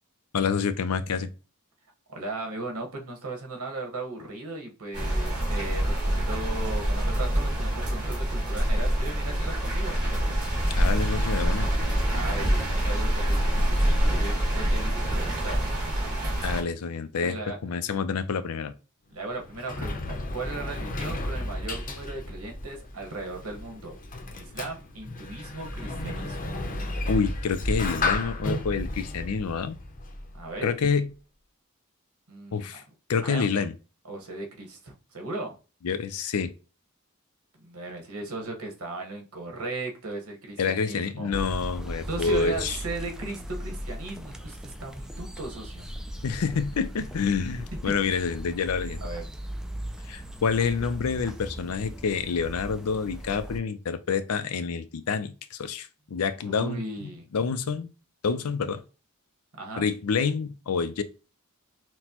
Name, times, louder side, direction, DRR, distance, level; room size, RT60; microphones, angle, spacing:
voice 1, 0.3-1.3 10.7-11.7 16.4-17.4 17.6-18.7 27.1-29.8 30.6-31.1 32.5-32.8 33.1-33.7 35.8-36.5 40.6-42.8 46.2-49.0 50.1-57.9 58.2-58.8 59.8-61.0, left 5 dB, 85° left, 0.5 m, -28 dB
voice 2, 2.1-10.0 12.1-15.6 17.2-17.6 19.1-23.9 24.3-26.4 30.3-30.7 32.3-32.7 33.2-33.6 34.0-35.5 37.6-41.3 42.1-45.9 47.9-48.0 49.0-49.2 56.4-57.3 59.5-59.8, right 2 dB, 85° right, 1.2 m, -37 dB
sound 1, 4.9-16.6, right 1 dB, 35° right, 1.9 m, -25 dB
Sliding door, 19.1-30.5, left 2 dB, 40° left, 0.7 m, -33 dB
sound 2, 41.3-53.6, equal, 5° right, 0.3 m, -38 dB
6.0 x 2.1 x 2.9 m
head